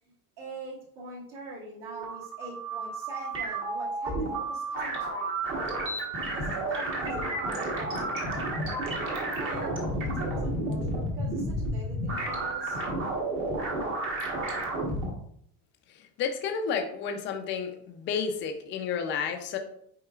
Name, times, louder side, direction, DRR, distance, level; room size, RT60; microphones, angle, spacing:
voice 1, 0.4-5.4 6.3-8.4 9.4-9.8 10.0-12.8, right 3 dB, 55° right, -5 dB, 2.2 m, -43 dB
sound 1, 1.8-15.1, right 1 dB, 30° right, 1.2 m, -31 dB
voice 2, 15.9-19.6, left 6 dB, 25° left, 5 dB, 0.5 m, -31 dB
8.7 x 4.7 x 2.4 m, 0.70 s
cardioid pair, 175°, 45 cm